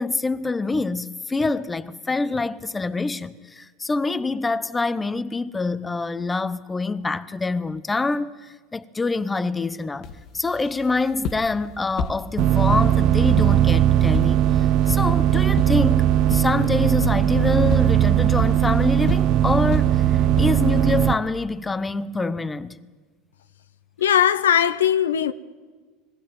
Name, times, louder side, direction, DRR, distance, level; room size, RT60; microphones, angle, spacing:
voice 1, 0.0-10.1 10.3-22.8, left 3 dB, 15° left, 0.9 m, -26 dB
sound 1, 10.0-20.8, left 5 dB, 55° left, 1.5 m, -34 dB
sound 2, 12.4-21.1, right 11 dB, 55° right, 0.8 m, -19 dB
voice 2, 24.0-25.3, left 9 dB, 85° left, 0.7 m, -19 dB
21.0 x 15.5 x 9.2 m
hypercardioid pair, 85°, 0 cm